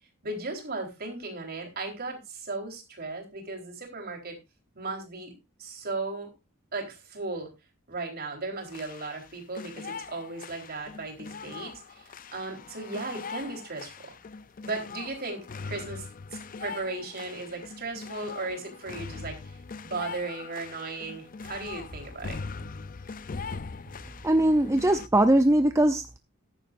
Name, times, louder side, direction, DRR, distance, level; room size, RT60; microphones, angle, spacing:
voice 1, 0.2-4.4 4.7-5.3 5.6-6.3 6.7-7.5 7.9-14.1 14.6-22.4, right 3 dB, 45° right, 4.0 m, -36 dB
sound 1, 8.6-25.1, left 4 dB, 40° left, 0.5 m, -41 dB
voice 2, 24.2-26.2, right 1 dB, 15° right, 0.5 m, -21 dB
14.5 x 10.0 x 2.6 m
head